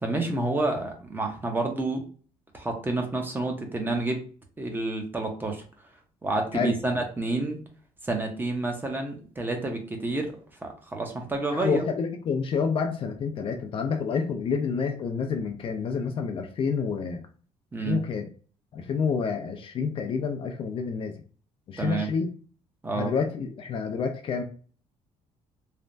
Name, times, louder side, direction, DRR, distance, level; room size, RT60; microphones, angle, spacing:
voice 1, 0.0-2.0 2.5-4.2 4.6-5.6 6.2-7.6 8.0-10.3 10.6-11.8 17.7-18.0 21.8-22.1 22.8-23.1, right 2 dB, 15° right, 3 dB, 0.6 m, -29 dB
voice 2, 11.5-17.2 17.8-18.3 18.7-21.2 21.7-22.3 22.9-24.4, left 5 dB, 45° left, 6 dB, 0.4 m, -28 dB
3.2 x 2.0 x 2.5 m, 0.41 s
cardioid pair, 125°, 12 cm